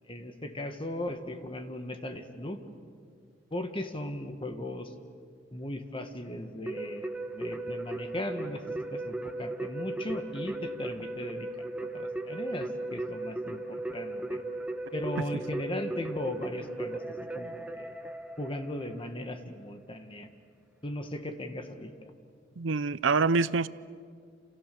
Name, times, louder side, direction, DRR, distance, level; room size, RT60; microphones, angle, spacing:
voice 1, 0.1-2.6 3.5-4.9 5.5-8.6 8.9-11.5 11.9-14.4 14.9-18.0 18.4-20.3 20.8-22.1, left 1 dB, 30° left, 6 dB, 1.8 m, -37 dB
Keyboard (musical), 6.7-19.1, right 2 dB, 5° right, 1.2 m, -37 dB
voice 2, 22.6-23.7, right 4 dB, 90° right, 17 dB, 0.6 m, -25 dB
29.0 x 28.0 x 7.0 m, 2.2 s
head